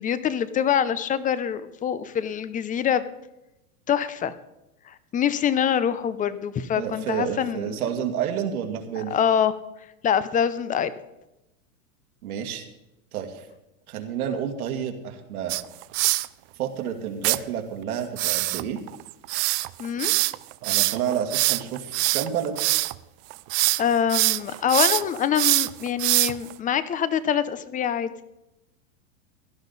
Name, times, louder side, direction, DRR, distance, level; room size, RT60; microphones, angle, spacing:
voice 1, 0.0-3.0 3.9-4.3 4.9-7.8 9.0-9.5 10.0-10.9 19.8-20.1 23.8-28.1, left 8 dB, 20° left, 15 dB, 0.6 m, -25 dB
voice 2, 6.7-9.1 12.2-12.6 13.1-13.4 13.9-15.6 16.6-18.8 20.6-22.8, right 8 dB, 80° right, 3 dB, 2.3 m, -30 dB
sound 1, 15.5-16.3 17.2-17.4 18.2-23.0 23.3-23.8 24.1-26.5, right 22 dB, 40° right, 0.5 m, -23 dB
16.5 x 12.0 x 4.1 m, 0.94 s
supercardioid pair, 130°, 43 cm